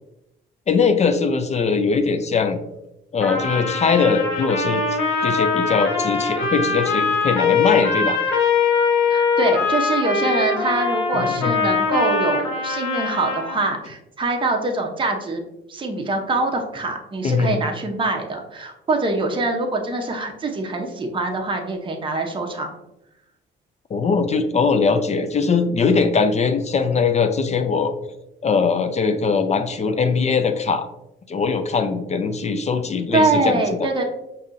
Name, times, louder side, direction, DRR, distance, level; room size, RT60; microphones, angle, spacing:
voice 1, 0.7-2.6 3.1-4.8 5.2-8.2 11.1-11.5 17.2-17.6 23.9-27.9 28.4-30.9 31.3-33.9, left 5 dB, 35° left, 8 dB, 0.4 m, -21 dB
Trumpet, 3.2-13.6, left 4 dB, 80° left, 1.1 m, -22 dB
voice 2, 9.1-15.4 15.7-22.7 33.1-34.0, right 3 dB, 25° right, 2 dB, 0.7 m, -24 dB
5.3 x 2.7 x 2.5 m, 0.88 s
cardioid pair, 90°, 20 cm